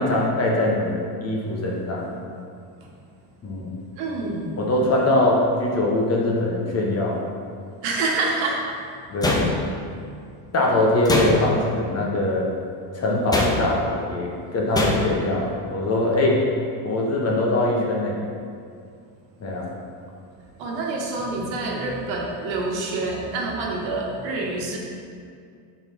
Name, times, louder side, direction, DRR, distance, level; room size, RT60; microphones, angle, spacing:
voice 1, 0.0-2.2 3.4-3.8 4.6-7.2 9.1-9.5 10.5-12.5 12.9-16.4 16.8-18.2 19.4-19.7, left 2 dB, 30° left, -2 dB, 1.1 m, -22 dB
voice 2, 4.0-4.5 7.8-8.6 20.6-24.8, right 3 dB, 70° right, -2 dB, 1.3 m, -27 dB
sound 1, 9.2-9.9 11.1-11.7 13.3-13.9 14.8-15.3, left 1 dB, 10° left, 0.5 m, -23 dB
4.3 x 4.2 x 5.6 m, 2.3 s
cardioid pair, 125°, 48 cm